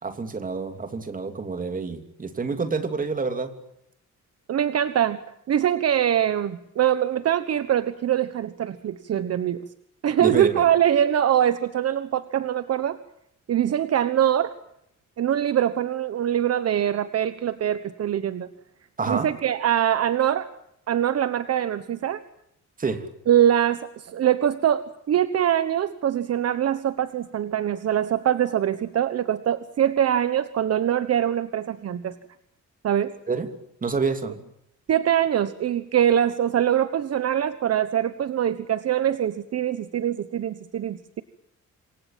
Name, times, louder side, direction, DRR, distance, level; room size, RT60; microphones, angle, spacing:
voice 1, 0.0-3.5 10.2-10.7 19.0-19.3 22.8-23.1 33.3-33.5 33.8-34.4, right 4 dB, 25° right, 8 dB, 3.0 m, -27 dB
voice 2, 4.5-5.2 5.5-9.6 10.0-13.0 13.5-14.5 15.2-18.5 19.1-20.5 20.9-22.2 23.3-32.2 32.8-33.2 34.9-41.2, right 10 dB, 55° right, 13 dB, 1.2 m, -23 dB
28.0 x 23.5 x 7.5 m, 0.79 s
wide cardioid pair, 175°, 30 cm